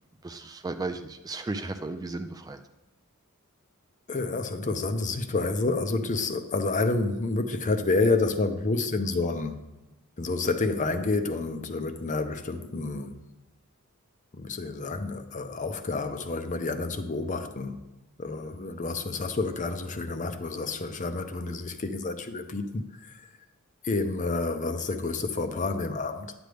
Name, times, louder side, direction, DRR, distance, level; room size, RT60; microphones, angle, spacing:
voice 1, 0.2-2.6, right 3 dB, 15° right, 0.3 m, -35 dB
voice 2, 4.1-9.6 10.2-13.2 14.3-17.8 18.2-23.3 23.8-26.3, left 3 dB, 35° left, 0.6 m, -29 dB
10.5 x 7.7 x 3.4 m
head